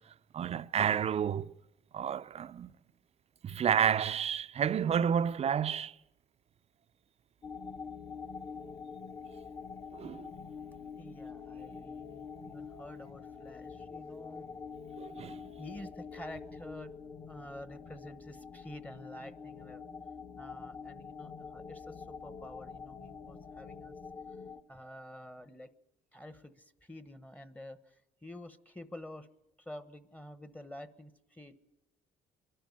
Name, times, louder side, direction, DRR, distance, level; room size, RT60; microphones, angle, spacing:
voice 1, 0.3-1.5 1.9-2.7 3.4-6.0 9.9-10.3 15.0-15.4, right 8 dB, 40° right, 0.6 m, -30 dB
sound 1, 7.4-24.6, left 5 dB, 30° left, 1.3 m, -46 dB
voice 2, 10.9-14.5 15.6-19.9 20.4-23.9 24.3-24.4 24.7-25.7 26.1-29.3 29.6-31.6, left 1 dB, 10° left, 1.1 m, -49 dB
23.5 x 12.5 x 9.6 m
cardioid pair, 110°, 17 cm